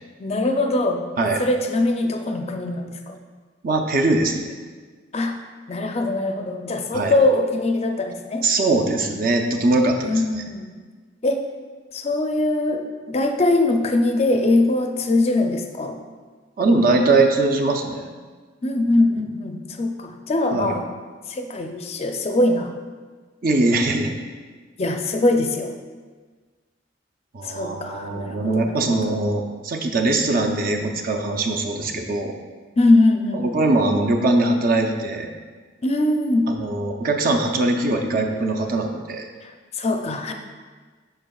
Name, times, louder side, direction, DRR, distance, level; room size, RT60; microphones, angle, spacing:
voice 1, 0.2-1.0 1.4-3.2 5.1-5.4 5.7-8.5 10.0-10.7 11.2-11.4 11.9-16.0 18.6-20.8 21.3-22.7 24.8-25.7 27.4-29.1 32.8-33.4 35.8-36.5 39.4-40.3, left 2 dB, 35° left, 4 dB, 0.5 m, -22 dB
voice 2, 3.6-4.5 6.9-7.1 8.4-10.4 16.6-18.1 20.5-20.7 23.4-24.1 27.3-32.3 33.3-35.3 36.5-39.3, right 2 dB, 50° right, 4 dB, 0.6 m, -21 dB
7.9 x 5.8 x 2.3 m, 1.5 s
head